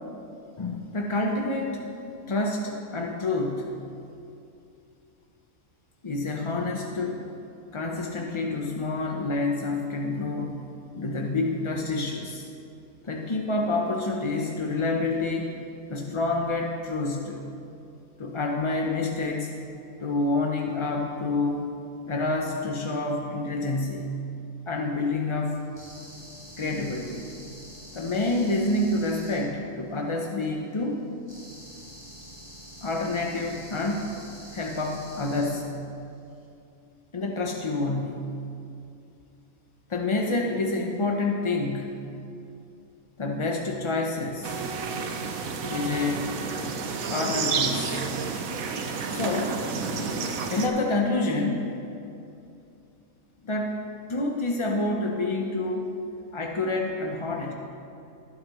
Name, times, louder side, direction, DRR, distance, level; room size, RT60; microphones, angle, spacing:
voice 1, 0.6-1.8 2.3-3.7 6.0-7.3 7.7-10.6 11.0-12.5 13.0-15.6 15.9-17.4 18.2-19.6 20.0-21.7 22.1-24.1 24.7-25.7 26.6-27.3 27.9-31.0 32.8-34.1 34.5-35.7 37.1-38.3 39.9-42.0 43.2-44.6 45.6-46.3 47.1-48.1 49.1-49.6 50.5-51.7 53.4-53.8 54.1-55.9 56.3-57.5, left 2 dB, 40° left, 1 dB, 0.4 m, -28 dB
sound 1, 25.7-29.4 31.3-35.5, equal, 15° left, 2.7 m, -46 dB
sound 2, 44.4-50.7, right 5 dB, 80° right, 1.2 m, -30 dB
21.0 x 7.7 x 3.0 m, 2.6 s
omnidirectional pair, 1.5 m